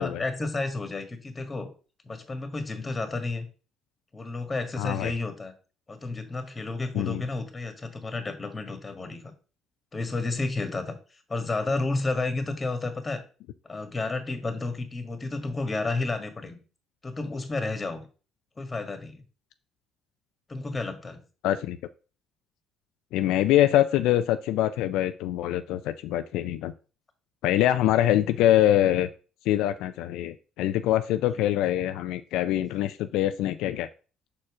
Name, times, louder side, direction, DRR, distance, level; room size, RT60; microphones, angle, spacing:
voice 1, 0.0-1.7 2.0-3.5 4.1-5.5 5.9-9.2 9.9-11.0 11.3-13.2 13.6-16.6 17.0-18.1 18.6-19.2 20.5-21.2 31.2-31.4, left 3 dB, 25° left, 7 dB, 1.7 m, -31 dB
voice 2, 4.8-5.1 6.9-7.2 21.4-21.8 23.1-26.7 27.4-29.1 29.5-33.9, left 13 dB, 80° left, 10 dB, 0.4 m, -24 dB
6.3 x 4.4 x 4.9 m, 0.36 s
supercardioid pair, 80°, 0 cm